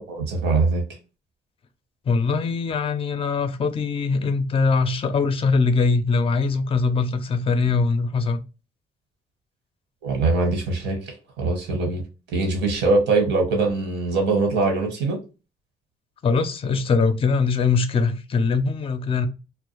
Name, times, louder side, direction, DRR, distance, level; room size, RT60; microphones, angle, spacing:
voice 1, 0.1-0.8 10.0-12.0 12.3-15.2, right 3 dB, 90° right, 1.1 m, -22 dB
voice 2, 2.1-8.4 16.2-19.3, left 4 dB, 30° left, 0.4 m, -22 dB
2.3 x 2.0 x 2.9 m
cardioid pair, 100°, 18 cm